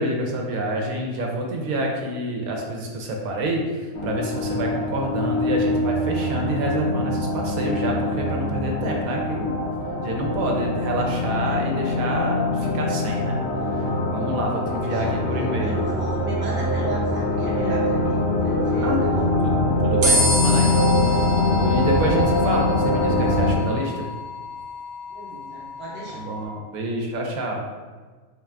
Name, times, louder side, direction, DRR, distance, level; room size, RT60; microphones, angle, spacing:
voice 1, 0.0-9.6 10.0-13.4 13.7-15.8 18.8-19.0 19.4-19.5 19.8-21.3 21.5-24.0 26.1-27.6, right 1 dB, 75° right, 0 dB, 1.0 m, -27 dB
sound 1, 3.9-23.5, left 1 dB, 65° left, 1.0 m, -23 dB
voice 2, 14.8-15.2 15.6-19.3 25.1-26.2, right 2 dB, 15° right, -6 dB, 0.5 m, -34 dB
sound 2, 20.0-26.4, left 1 dB, 55° right, 1.2 m, -28 dB
4.0 x 2.4 x 3.2 m, 1.4 s
omnidirectional pair, 1.6 m